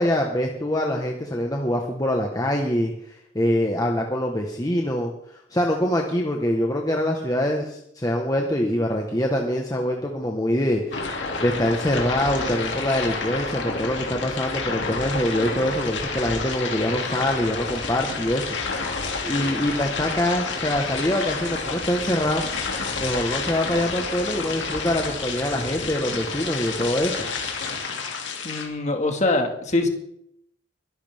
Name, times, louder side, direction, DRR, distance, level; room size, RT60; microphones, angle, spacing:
voice 1, 0.0-11.1 11.4-18.5 19.2-22.4 23.0-27.2, left 1 dB, 20° left, 0 dB, 1.3 m, -24 dB
sound 1, 10.9-28.7, left 4 dB, 65° left, 2.6 m, -29 dB
voice 2, 28.4-29.9, left 2 dB, 35° left, 4 dB, 2.0 m, -23 dB
23.0 x 11.0 x 3.6 m, 0.74 s
head